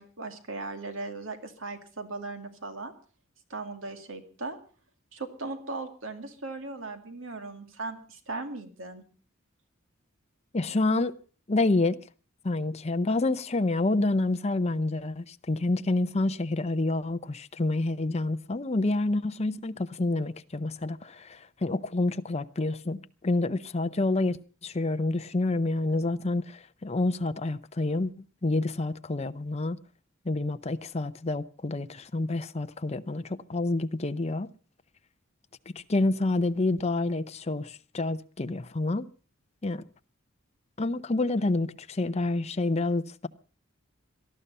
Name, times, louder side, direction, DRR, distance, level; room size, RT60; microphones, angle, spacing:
voice 1, 0.0-2.9 3.5-4.6 5.1-9.0, right 3 dB, 70° right, 2.3 m, -38 dB
voice 2, 10.5-11.1 11.5-12.0 12.4-24.4 24.6-29.8 30.3-34.5 35.7-39.1 39.6-39.8 40.8-43.3, left 2 dB, 30° left, 0.7 m, -28 dB
19.0 x 13.0 x 5.5 m
head